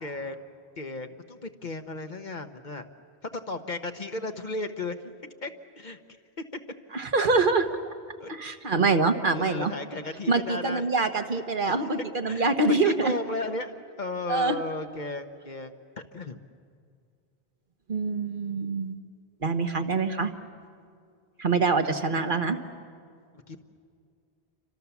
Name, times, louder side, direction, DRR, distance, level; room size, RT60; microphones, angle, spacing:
voice 1, 0.0-0.5 0.8-2.9 3.3-5.1 5.4-6.0 8.2-8.3 9.3-10.9 11.7-11.9 12.3-16.4 23.5-23.6, left 2 dB, 45° left, 7 dB, 1.1 m, -35 dB
voice 2, 6.9-7.7 8.3-9.7 10.3-13.1 14.3-14.5 17.9-19.0 19.4-20.3 21.4-22.6, right 3 dB, 50° right, 7 dB, 1.3 m, -25 dB
29.0 x 25.0 x 7.1 m, 2.2 s
omnidirectional pair, 1.1 m